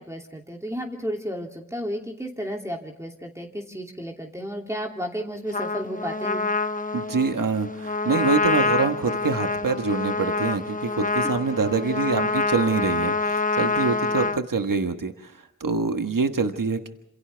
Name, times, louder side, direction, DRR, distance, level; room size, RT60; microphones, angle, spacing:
voice 1, 0.0-6.4, equal, 10° right, 0 dB, 2.7 m, -33 dB
Trumpet, 5.5-14.4, left 3 dB, 25° left, 0.9 m, -26 dB
voice 2, 6.9-16.9, right 4 dB, 80° right, 6 dB, 1.4 m, -25 dB
28.0 x 27.0 x 3.4 m, 0.80 s
wide cardioid pair, 50°, 32 cm